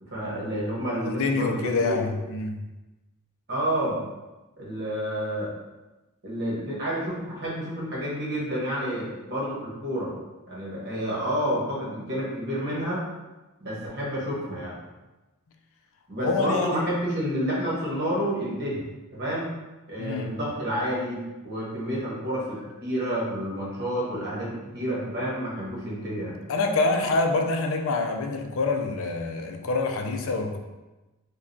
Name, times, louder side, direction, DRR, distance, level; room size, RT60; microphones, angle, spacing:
voice 1, 0.0-2.1 3.5-4.0 4.6-5.5 6.2-10.1 10.5-13.0 13.6-14.8 16.1-18.8 19.1-19.5 19.9-26.4, equal, 50° right, -5 dB, 1.2 m, -29 dB
voice 2, 0.9-2.6 16.2-16.8 20.0-20.3 26.5-30.6, left 3 dB, 65° left, 4 dB, 0.5 m, -26 dB
4.9 x 2.3 x 2.7 m, 1.1 s
head